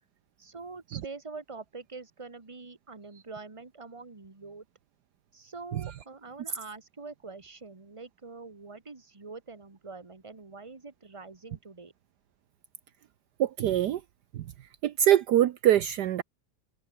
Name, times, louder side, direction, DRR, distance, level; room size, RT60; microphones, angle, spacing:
voice 1, 0.4-4.6 5.3-11.9, right 4 dB, 15° right, 1.8 m, -45 dB
voice 2, 13.4-14.0 14.3-14.5 14.8-16.2, right 11 dB, 70° right, 1.3 m, -24 dB
omnidirectional pair, 1.9 m